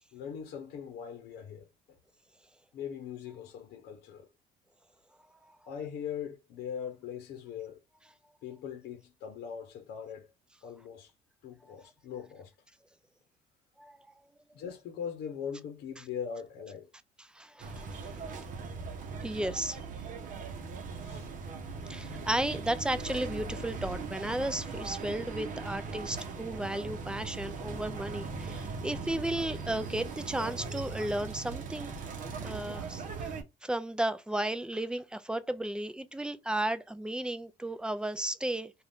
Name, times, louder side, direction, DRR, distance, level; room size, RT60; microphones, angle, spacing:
voice 1, 0.1-2.0 2.7-4.3 5.7-7.8 8.4-10.3 10.6-11.1 11.4-12.5 14.5-16.9 21.0-21.3 21.8-22.1, left 8 dB, 70° left, 0.8 m, -41 dB
voice 2, 17.3-18.4 19.2-19.8 21.9-31.9 32.4-38.7, right 1 dB, 5° right, 0.3 m, -34 dB
sound 1, 17.6-33.4, right 4 dB, 50° right, 0.8 m, -39 dB
2.6 x 2.4 x 3.4 m
cardioid pair, 110°, 17 cm